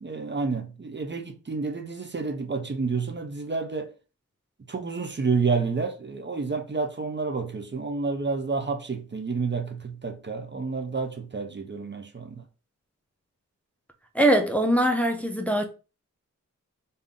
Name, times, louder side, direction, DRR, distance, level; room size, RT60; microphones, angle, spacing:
voice 1, 0.0-3.9 4.7-12.4, right 4 dB, 35° right, 0.7 m, -29 dB
voice 2, 14.1-15.7, right 1 dB, 5° left, 0.6 m, -22 dB
3.5 x 2.8 x 3.8 m
cardioid pair, 60°, 31 cm